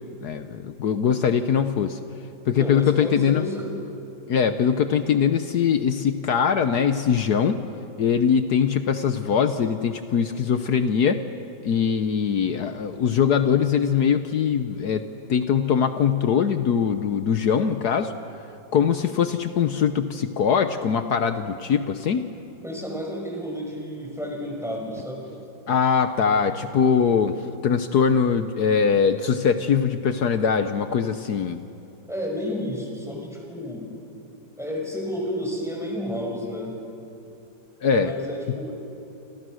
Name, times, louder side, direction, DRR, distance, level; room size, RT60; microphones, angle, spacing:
voice 1, 0.2-2.0 2.5-3.4 4.3-7.6 8.0-11.2 11.6-15.0 15.3-18.1 18.7-22.3 25.7-27.4 27.6-31.6 37.8-38.1, left 7 dB, 65° left, 9 dB, 1.3 m, -22 dB
voice 2, 2.5-3.7 22.6-25.3 32.1-33.9 34.6-36.8 38.0-38.7, equal, ahead, 0 dB, 5.4 m, -31 dB
29.0 x 26.0 x 6.3 m, 2.9 s
omnidirectional pair, 2.0 m